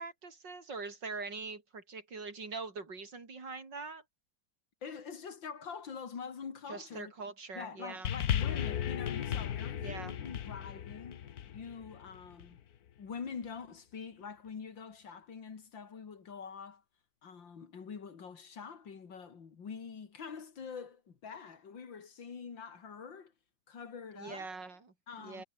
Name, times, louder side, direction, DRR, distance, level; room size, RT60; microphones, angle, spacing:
voice 1, 0.0-4.0 6.7-8.1 9.8-10.1 24.2-25.4, right 4 dB, 70° right, 4.6 m, -43 dB
voice 2, 4.8-7.1 7.5-11.2 11.5-12.6 13.0-16.8 17.2-23.3 23.7-24.5 25.1-25.4, left 6 dB, 85° left, 3.1 m, -45 dB
sound 1, 8.0-12.6 13.4-13.5, left 9 dB, 60° left, 1.4 m, -35 dB
omnidirectional pair, 2.0 m